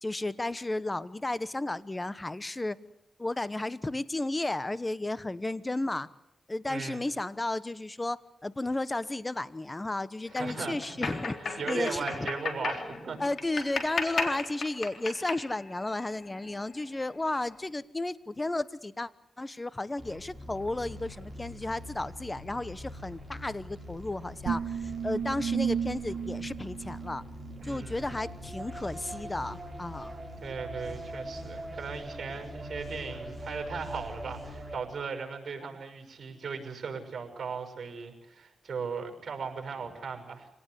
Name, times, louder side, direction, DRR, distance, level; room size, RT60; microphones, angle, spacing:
voice 1, 0.0-2.8 3.2-6.1 6.5-12.3 13.2-19.1 19.4-27.2 27.6-30.1, left 2 dB, 20° left, 16 dB, 1.1 m, -33 dB
voice 2, 6.7-7.1 10.3-13.2 27.6-28.1 30.4-40.5, right 5 dB, 60° right, 5 dB, 6.4 m, -38 dB
sound 1, 10.3-17.0, left 4 dB, 65° left, 3.7 m, -36 dB
sound 2, 20.0-34.8, equal, 15° right, 7.0 m, -42 dB
sound 3, 24.5-27.8, right 7 dB, 85° right, 1.9 m, -33 dB
26.0 x 18.5 x 8.3 m, 0.81 s
cardioid pair, 80°, 0 cm